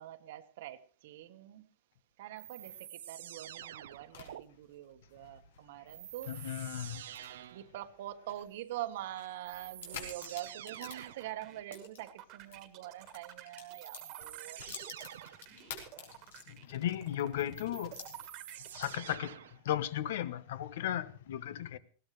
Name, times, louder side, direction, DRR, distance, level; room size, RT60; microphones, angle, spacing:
voice 1, 0.0-1.7 2.2-6.4 7.5-14.8, right 13 dB, 60° right, 1.3 m, -44 dB
sound 1, 2.4-4.4 5.9-7.7 9.0-9.1 9.4-11.3 13.7-15.5 17.2-19.6, right 11 dB, 90° right, 0.8 m, -48 dB
sound 2, 3.4-12.6 12.9-16.8 17.2-17.3 17.8-19.2, left 7 dB, 90° left, 5.4 m, -51 dB
voice 2, 6.3-7.0 16.5-18.0 18.7-21.8, left 11 dB, 65° left, 1.1 m, -36 dB
sound 3, 9.9-19.0, right 13 dB, 30° right, 1.6 m, -52 dB
20.5 x 17.5 x 3.3 m
supercardioid pair, 175°, 0 cm